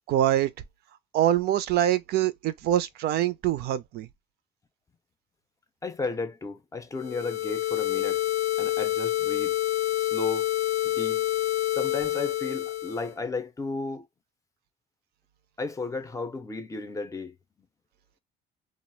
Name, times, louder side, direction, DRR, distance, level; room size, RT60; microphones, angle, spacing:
voice 1, 0.1-0.5 1.1-4.1, right 12 dB, 75° right, 0.4 m, -24 dB
voice 2, 5.8-8.2 8.6-9.6 10.0-10.5 10.8-11.2 11.7-14.1 15.6-17.3, left 3 dB, 20° left, 0.5 m, -34 dB
sound 1, 7.0-13.1, left 14 dB, 80° left, 0.5 m, -27 dB
2.2 x 2.0 x 3.1 m
cardioid pair, 110°, 17 cm